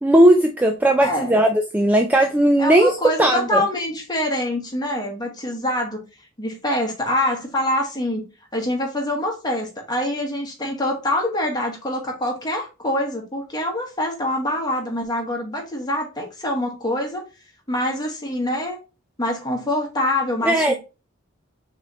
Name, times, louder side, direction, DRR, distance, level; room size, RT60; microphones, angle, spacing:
voice 1, 0.0-2.9 3.2-3.6 20.4-20.7, right 1 dB, 10° right, 0.3 m, -17 dB
voice 2, 1.0-1.4 2.6-6.0 6.4-8.2 8.5-17.2 17.7-18.8 19.2-20.7, left 1 dB, 20° left, 1.3 m, -25 dB
5.9 x 3.1 x 2.8 m
head